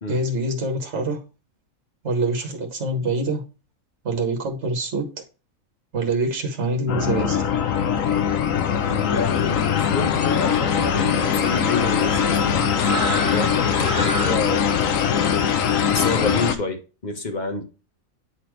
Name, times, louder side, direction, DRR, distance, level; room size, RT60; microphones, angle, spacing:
voice 1, 0.1-1.2 2.0-3.4 4.0-5.0 5.9-7.5, right 2 dB, 55° right, 1.6 m, -25 dB
sound 1, 6.9-16.5, left 7 dB, 75° left, 1.2 m, -21 dB
sound 2, 8.7-14.3, right 2 dB, 35° right, 2.2 m, -33 dB
voice 2, 8.9-14.7 15.9-17.6, left 3 dB, 35° left, 1.5 m, -29 dB
9.3 x 4.2 x 3.2 m
omnidirectional pair, 1.4 m